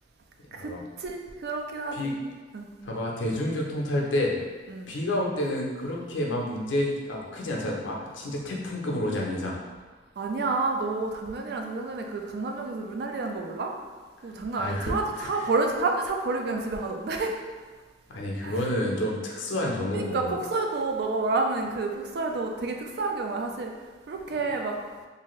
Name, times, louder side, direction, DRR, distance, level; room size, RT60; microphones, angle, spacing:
voice 1, 0.5-2.1 2.5-2.7 4.7-4.9 10.2-13.7 14.2-17.4 18.4-18.6 19.9-23.7 24.1-24.8, right 3 dB, 55° right, 2 dB, 0.3 m, -29 dB
voice 2, 2.8-4.4 4.9-9.6 14.5-15.3 18.1-20.4, left 1 dB, 75° left, -1 dB, 0.5 m, -29 dB
2.7 x 2.4 x 3.0 m, 1.4 s
head